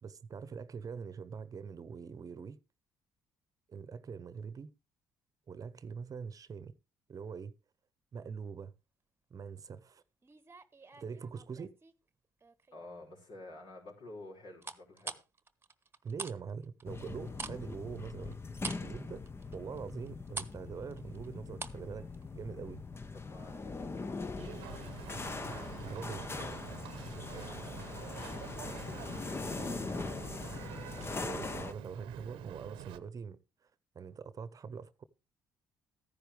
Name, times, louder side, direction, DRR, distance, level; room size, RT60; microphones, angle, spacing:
voice 1, 0.0-2.6 3.7-4.7 5.5-6.7 7.1-7.5 8.1-8.7 9.3-10.0 11.0-11.7 16.0-19.2 19.5-22.8 25.8-26.3 31.2-33.4 33.9-35.0, right 6 dB, 45° right, 0.9 m, -43 dB
sound 1, 10.2-11.9 12.4-12.9 14.6-16.4 16.6-21.9 22.1-22.3, right 4 dB, 25° right, 1.1 m, -44 dB
voice 2, 12.7-15.1 23.1-24.3 27.2-29.4, left 2 dB, 60° left, 5.6 m, -51 dB
sound 2, 16.8-31.7, left 4 dB, 30° left, 1.0 m, -41 dB
Boat Water vehicle, 24.4-33.0, right 13 dB, 80° right, 0.9 m, -47 dB
14.0 x 10.5 x 3.4 m
supercardioid pair, 65°, 9 cm